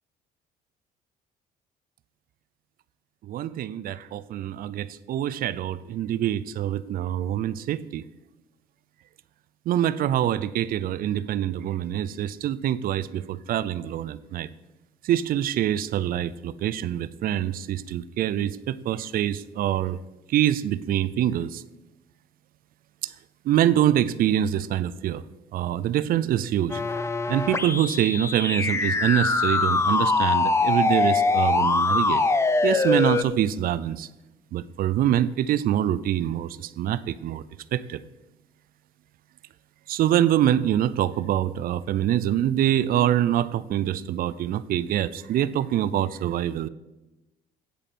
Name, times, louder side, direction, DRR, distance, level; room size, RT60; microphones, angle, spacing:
voice 1, 3.2-8.0 9.7-14.5 15.0-20.0 20.3-21.6 23.0-23.1 23.5-25.2 25.5-26.8 27.3-32.2 32.6-34.1 34.5-37.4 37.7-38.0 39.9-46.7, right 11 dB, 60° right, 16 dB, 0.5 m, -25 dB
sound 1, 26.7-33.2, left 3 dB, 15° left, 0.5 m, -23 dB
9.1 x 8.0 x 4.3 m, 1.0 s
cardioid pair, 110°, 17 cm